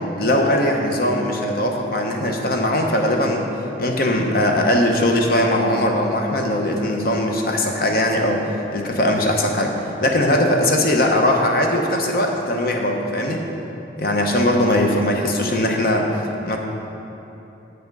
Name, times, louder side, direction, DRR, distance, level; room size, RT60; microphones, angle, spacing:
voice 1, 0.2-3.5 3.8-8.4 8.7-13.4 14.0-16.1 16.5-16.6, left 1 dB, 55° left, 2 dB, 0.8 m, -20 dB
7.8 x 5.8 x 5.3 m, 3.0 s
head